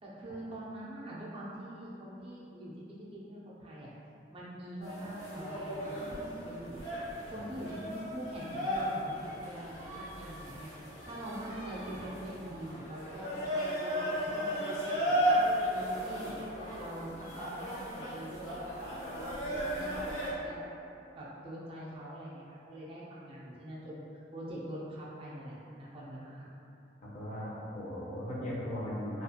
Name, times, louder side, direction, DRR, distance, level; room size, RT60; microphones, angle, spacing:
voice 1, 0.0-3.9 4.3-6.9 7.2-10.7 11.0-15.3 15.7-16.4 16.7-20.7 21.2-26.4, right 1 dB, 30° right, -7 dB, 0.4 m, -44 dB
sound 1, 4.8-20.3, equal, 90° left, 1.1 m, -35 dB
voice 2, 27.0-29.2, equal, 45° left, -8 dB, 0.6 m, -38 dB
2.4 x 2.3 x 2.7 m, 2.8 s
head